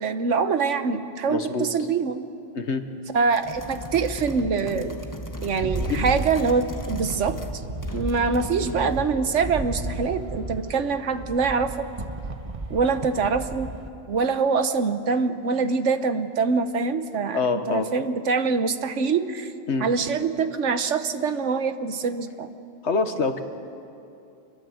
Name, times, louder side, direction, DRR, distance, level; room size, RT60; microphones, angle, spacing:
voice 1, 0.0-2.2 3.1-5.0 5.4-7.6 7.9-11.9 12.7-13.7 14.1-17.4 17.7-19.5 19.8-22.5, right 5 dB, 80° right, 10 dB, 1.4 m, -24 dB
voice 2, 1.3-1.7 2.6-2.8 5.6-6.1 17.3-17.9 19.7-19.9 22.8-23.4, left 4 dB, 70° left, 8 dB, 1.6 m, -26 dB
sound 1, 3.3-7.6 7.8-9.1, left 1 dB, 15° left, 1.3 m, -36 dB
Rattle, 5.4-13.9, right 2 dB, 30° right, 1.1 m, -34 dB
26.5 x 21.5 x 7.8 m, 2.6 s
omnidirectional pair, 1.2 m